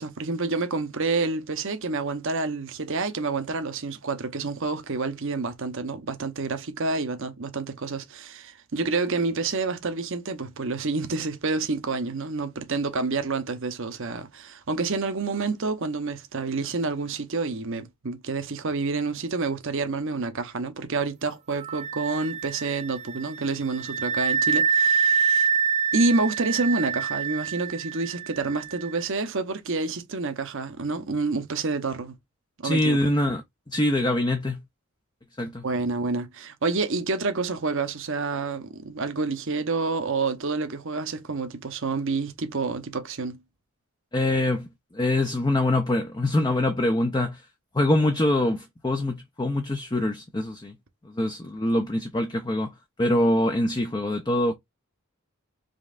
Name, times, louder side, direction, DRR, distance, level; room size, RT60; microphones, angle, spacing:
voice 1, 0.0-25.5 25.9-32.1 32.6-33.0 35.6-43.4, right 3 dB, 60° right, 0.8 m, -28 dB
Wind instrument woodwind instrument, 21.6-29.0, right 6 dB, 30° right, 0.3 m, -26 dB
voice 2, 32.6-34.6 35.4-35.6 44.1-44.7 44.9-47.4 47.7-50.7 51.0-52.7 53.0-54.5, left 1 dB, 20° left, 0.6 m, -24 dB
5.2 x 3.1 x 2.4 m
head